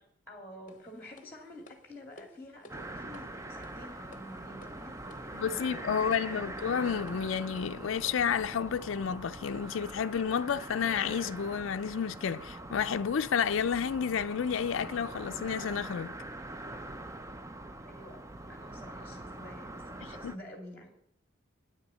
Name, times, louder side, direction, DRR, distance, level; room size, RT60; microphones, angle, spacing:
voice 1, 0.0-6.5 17.9-20.9, left 1 dB, 10° left, 2.3 m, -49 dB
sound 1, 0.7-8.4, left 1 dB, 40° left, 0.9 m, -57 dB
sound 2, 2.7-20.4, right 1 dB, 15° right, 0.5 m, -43 dB
voice 2, 5.4-16.1 20.2-20.3, left 7 dB, 70° left, 0.4 m, -31 dB
9.5 x 7.0 x 9.0 m
head